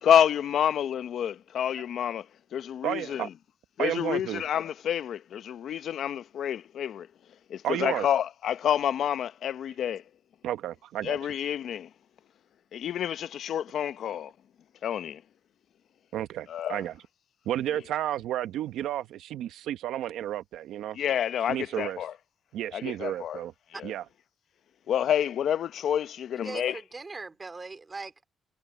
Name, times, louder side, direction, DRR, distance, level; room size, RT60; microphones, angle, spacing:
voice 1, 0.0-2.3 2.5-3.3 3.8-7.1 7.5-10.0 11.0-11.9 12.7-14.3 14.8-15.2 16.5-16.8 20.9-22.1 22.7-23.4 23.7-23.9 24.9-26.8, left 9 dB, 65° left, 0.7 m, -28 dB
voice 2, 2.8-3.3 3.8-4.4 7.6-8.1 10.4-11.2 16.1-16.9 17.4-21.0 21.5-22.0 22.5-23.5 23.8-24.0, right 12 dB, 85° right, 1.2 m, -32 dB
voice 3, 26.4-28.2, right 3 dB, 25° right, 3.6 m, -40 dB
cardioid pair, 90°, 0 cm